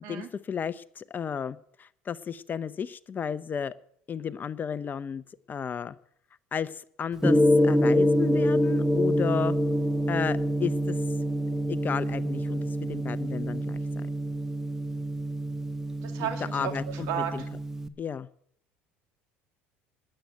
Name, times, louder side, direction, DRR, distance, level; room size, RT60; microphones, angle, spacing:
voice 1, 0.1-3.7 4.1-6.0 6.5-7.4 7.6-9.5 10.1-11.0 11.7-14.1 16.2-17.4 18.0-18.3, left 7 dB, 30° left, 15 dB, 0.7 m, -33 dB
Gong, 7.2-17.9, equal, 10° right, 1.0 m, -26 dB
voice 2, 16.0-16.7 17.1-17.3, right 9 dB, 70° right, 6 dB, 2.3 m, -32 dB
12.5 x 7.8 x 9.2 m, 0.66 s
supercardioid pair, 95°, 6 cm